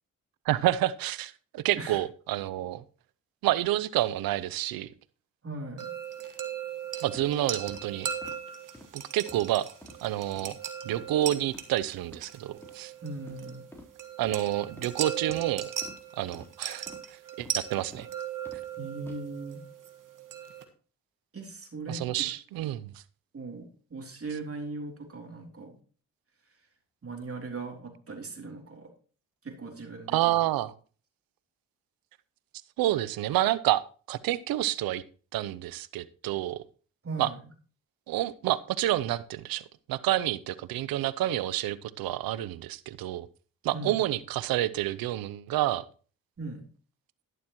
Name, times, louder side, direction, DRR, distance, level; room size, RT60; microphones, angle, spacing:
voice 1, 0.5-2.8 3.4-4.9 7.0-8.1 8.9-9.7 10.0-10.6 10.8-12.9 14.2-15.7 16.2-16.9 17.4-18.1 21.9-22.9 30.1-30.7 32.8-33.8 34.1-35.0 35.3-36.6 37.2-37.3 38.1-43.3 43.6-45.8, right 14 dB, 80° right, 18 dB, 0.7 m, -29 dB
voice 2, 5.4-5.9 13.0-13.6 18.8-19.6 21.3-22.3 22.6-22.7 23.3-25.8 27.0-28.9 29.4-30.4 37.0-37.4 43.7-44.0 46.4-46.6, right 3 dB, 40° right, 2 dB, 3.3 m, -39 dB
sound 1, 5.8-20.6, right 9 dB, 60° right, 1.7 m, -38 dB
sound 2, 7.1-7.3 7.7-7.8 8.2-8.4 8.7-8.9 9.3-9.5 9.8-10.0 10.4-10.5 10.9-11.1 11.5-11.7 12.1-12.2 12.6-12.8 13.2-13.4 13.7-13.9 14.2-14.4 14.8-14.9 15.3-15.5 15.8-16.0 16.3-16.5 16.9-17.1 17.4-17.6 17.9-18.1 18.5-18.6 19.0-19.2, left 1 dB, 5° left, 4.0 m, -49 dB
11.5 x 11.0 x 3.0 m, 0.40 s
supercardioid pair, 55°, 35 cm